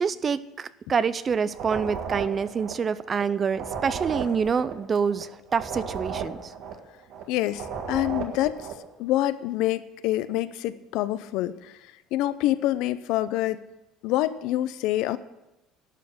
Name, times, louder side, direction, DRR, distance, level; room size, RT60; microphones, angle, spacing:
voice 1, 0.0-6.5, right 6 dB, 25° right, 16 dB, 0.4 m, -26 dB
sound 1, 1.5-3.2 3.5-7.2 7.5-8.9, right 6 dB, 60° right, 1.7 m, -35 dB
voice 2, 7.3-8.7 9.0-11.8 12.1-13.6 14.0-15.2, left 14 dB, 75° left, 14 dB, 0.6 m, -26 dB
12.0 x 6.4 x 8.6 m, 0.93 s
cardioid pair, 145°, 0 cm